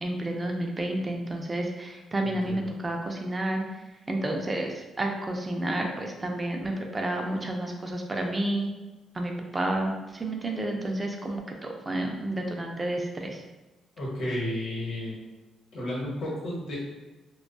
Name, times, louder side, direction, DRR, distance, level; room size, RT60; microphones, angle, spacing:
voice 1, 0.0-3.6 4.1-8.7 9.1-13.4, right 1 dB, 20° right, 2 dB, 0.3 m, -30 dB
voice 2, 2.2-2.7 14.0-15.2 15.7-16.8, left 1 dB, 70° left, -5 dB, 1.0 m, -32 dB
2.5 x 2.2 x 2.2 m, 1.1 s
cardioid pair, 90°, 0 cm